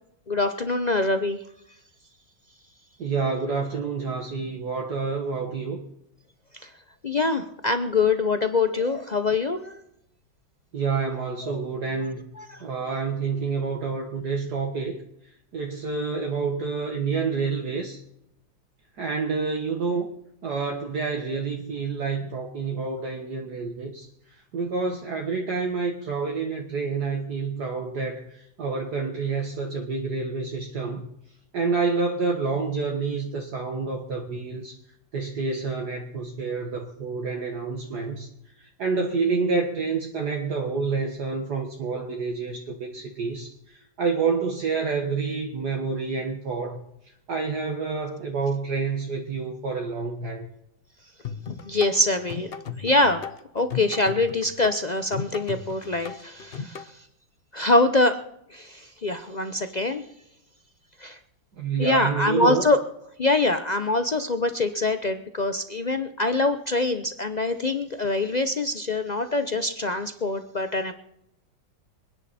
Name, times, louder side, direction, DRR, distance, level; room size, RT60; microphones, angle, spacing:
voice 1, 0.3-1.4 6.6-6.7 7.0-9.8 11.1-11.2 11.5-11.6 12.4-12.6 51.6-53.2 53.5-56.9 57.5-58.2 58.5-60.0 61.0-61.2 61.8-62.8 63.2-70.9, left 2 dB, 80° left, 0.3 m, -24 dB
voice 2, 3.0-5.8 10.7-12.3 12.6-15.0 15.5-18.0 19.0-20.1 20.4-24.1 24.5-31.1 31.5-34.8 35.1-38.3 38.6-46.8 47.3-50.5 61.6-62.7, right 4 dB, 60° right, 2.0 m, -28 dB
sound 1, 51.2-56.9, left 6 dB, 45° left, 0.8 m, -36 dB
26.5 x 10.0 x 4.2 m
omnidirectional pair, 2.1 m